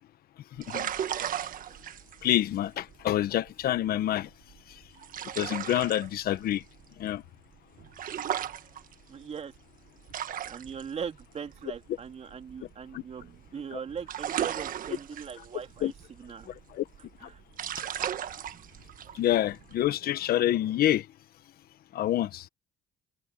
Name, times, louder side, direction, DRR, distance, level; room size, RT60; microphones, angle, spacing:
sound 1, 0.6-13.5 13.7-19.9, right 10 dB, 55° right, 1.5 m, -37 dB
voice 1, 2.2-4.3 4.7-4.8 5.3-6.6 7.0-7.2 12.9-13.0 15.8-15.9 16.5-16.8 17.2-17.3 19.1-21.1 21.9-22.5, left 13 dB, 65° left, 1.2 m, -27 dB
voice 2, 9.1-9.5 10.4-16.5 17.2-17.4, right 7 dB, 40° right, 3.1 m, -40 dB
open air
cardioid pair, 110°, 17 cm